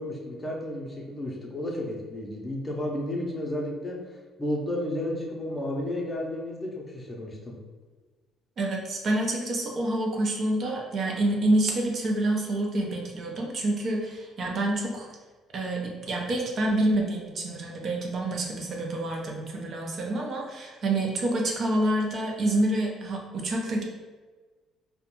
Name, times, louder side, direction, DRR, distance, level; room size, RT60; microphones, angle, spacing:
voice 1, 0.0-7.6, left 1 dB, 20° left, -1 dB, 0.6 m, -32 dB
voice 2, 8.6-15.1 15.5-23.8, right 1 dB, 50° right, 0 dB, 0.5 m, -27 dB
2.4 x 2.1 x 2.9 m, 1.3 s
cardioid pair, 100°, 0 cm